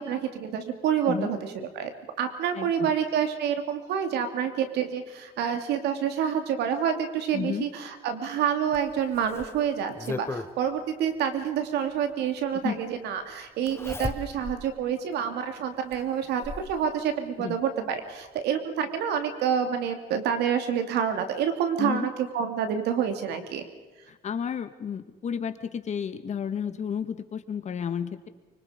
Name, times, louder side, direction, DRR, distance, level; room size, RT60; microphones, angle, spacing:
voice 1, 0.0-1.9 2.2-23.6, right 8 dB, 80° right, 7 dB, 2.9 m, -28 dB
voice 2, 2.5-2.9 7.3-7.7 12.6-12.8 17.4-17.6 21.8-22.1 24.1-28.3, left 7 dB, 45° left, 10 dB, 1.6 m, -32 dB
Zipper (clothing), 8.7-10.5 11.9-12.0 13.7-14.6 15.1-15.2 15.9-16.7 17.9-18.0 18.4-18.5, left 3 dB, 15° left, 1.2 m, -36 dB
24.5 x 24.5 x 5.2 m, 1.2 s
cardioid pair, 110°, 17 cm